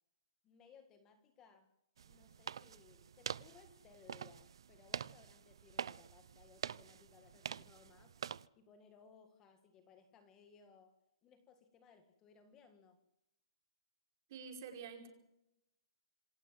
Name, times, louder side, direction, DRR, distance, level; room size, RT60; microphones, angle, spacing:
voice 1, 0.4-1.7 2.0-8.2 8.5-13.0, left 6 dB, 15° left, 8 dB, 1.7 m, -64 dB
sound 1, 2.0-8.5, right 8 dB, 65° right, 0.7 m, -46 dB
voice 2, 14.3-15.1, right 6 dB, 35° right, 4 dB, 5.1 m, -48 dB
27.0 x 14.5 x 7.7 m, 0.83 s
hypercardioid pair, 170°, 3 cm